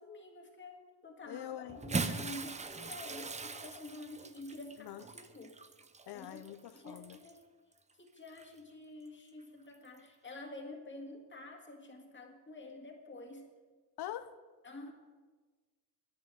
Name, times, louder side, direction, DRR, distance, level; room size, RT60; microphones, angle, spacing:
voice 1, 0.0-5.6 6.1-6.5 6.7-7.5 8.0-13.5 14.6-14.9, left 2 dB, 30° left, 1 dB, 1.9 m, -49 dB
voice 2, 1.2-1.8 4.8-5.0 6.1-7.2 14.0-14.3, left 12 dB, 75° left, 12 dB, 0.6 m, -44 dB
Bathtub (filling or washing) / Splash splatter, 1.7-7.4 8.3-8.4 9.9-10.0, right 4 dB, 20° right, 0.5 m, -41 dB
10.5 x 10.5 x 6.6 m, 1.3 s
wide cardioid pair, 160°, 40 cm